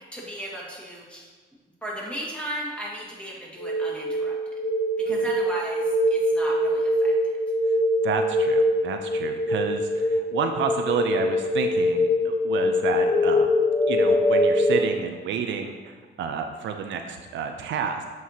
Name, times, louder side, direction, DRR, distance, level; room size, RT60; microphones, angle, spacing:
voice 1, 0.1-1.3 1.8-4.5 5.0-7.4, right 1 dB, 5° left, -4 dB, 1.8 m, -36 dB
sound 1, 3.6-14.8, left 1 dB, 30° left, 1.2 m, -23 dB
voice 2, 8.0-13.5 13.9-18.0, right 6 dB, 70° right, 5 dB, 0.5 m, -30 dB
7.8 x 4.6 x 2.8 m, 1.5 s
cardioid pair, 90°, 20 cm